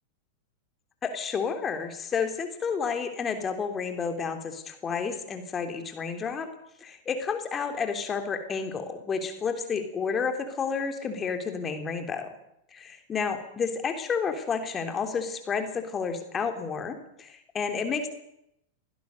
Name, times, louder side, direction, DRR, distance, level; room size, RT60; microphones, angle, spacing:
voice 1, 1.0-6.5 6.8-12.3 12.7-18.1, left 5 dB, 20° left, 6 dB, 3.3 m, -31 dB
23.0 x 17.5 x 6.7 m, 0.79 s
figure-of-eight pair, 90°, 0 cm